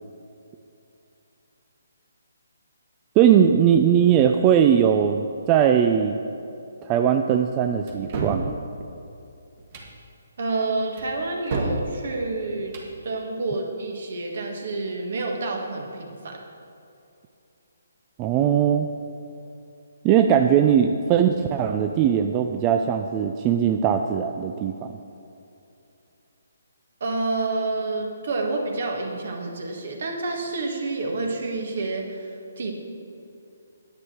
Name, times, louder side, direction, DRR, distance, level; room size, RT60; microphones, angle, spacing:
voice 1, 3.2-6.2 6.8-8.5 18.2-18.9 20.0-24.9, right 8 dB, 25° right, 5 dB, 0.4 m, -20 dB
sound 1, 7.9-8.4 9.6-9.9 11.0-11.8 12.6-12.9, right 3 dB, 40° right, 1.6 m, -30 dB
voice 2, 10.4-12.8 13.0-16.4 27.0-32.7, right 3 dB, 60° right, 2 dB, 1.6 m, -28 dB
9.7 x 9.4 x 4.5 m, 2.7 s
figure-of-eight pair, 145°, 0 cm